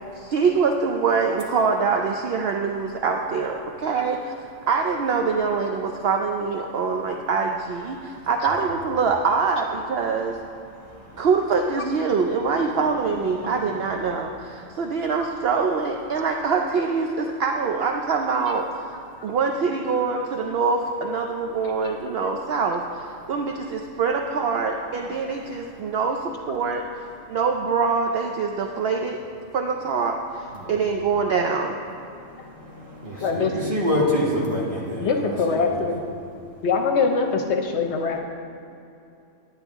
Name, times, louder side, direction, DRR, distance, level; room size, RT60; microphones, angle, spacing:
voice 1, 0.2-4.3 4.7-10.4 11.1-18.9 19.2-29.2 29.5-31.8, right 5 dB, 60° right, 2 dB, 0.7 m, -24 dB
voice 2, 10.7-11.2 13.3-13.5 30.6-30.8 32.1-35.9, left 1 dB, 40° right, -5 dB, 2.0 m, -28 dB
voice 3, 33.2-33.5 34.9-36.0 36.6-38.2, left 4 dB, 65° left, 3 dB, 0.9 m, -23 dB
10.0 x 8.8 x 3.5 m, 2.7 s
omnidirectional pair, 1.3 m